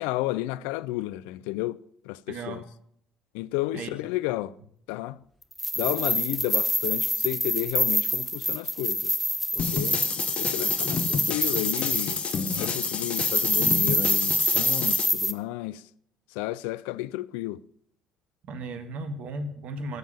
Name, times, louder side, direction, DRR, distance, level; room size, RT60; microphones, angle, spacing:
voice 1, 0.0-1.8 2.0-2.6 3.3-4.6 4.9-5.2 5.8-9.2 9.5-10.0 10.4-12.2 12.6-15.8 16.3-17.6, left 17 dB, 70° left, 0.4 m, -31 dB
voice 2, 2.3-2.6 3.7-3.9 18.5-20.0, right 2 dB, 55° right, 1.6 m, -35 dB
sound 1, 5.5-15.3, equal, ahead, 0.9 m, -26 dB
sound 2, 9.6-15.1, left 6 dB, 45° left, 0.9 m, -30 dB
12.0 x 7.3 x 6.9 m
figure-of-eight pair, 55°, 3 cm